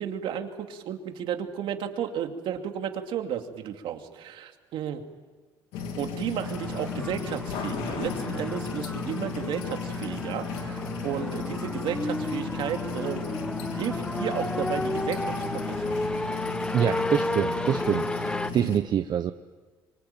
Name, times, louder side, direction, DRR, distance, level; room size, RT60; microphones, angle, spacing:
voice 1, 0.0-5.0 6.0-13.3 13.6-15.9, right 9 dB, 70° right, 5 dB, 2.6 m, -33 dB
sound 1, 5.7-18.8, left 5 dB, 90° left, 3.1 m, -34 dB
sound 2, 6.4-18.5, left 1 dB, 10° left, 1.0 m, -33 dB
voice 2, 16.7-19.3, right 9 dB, 50° right, 9 dB, 0.9 m, -26 dB
26.0 x 24.0 x 9.0 m, 1.4 s
cardioid pair, 110°, 9 cm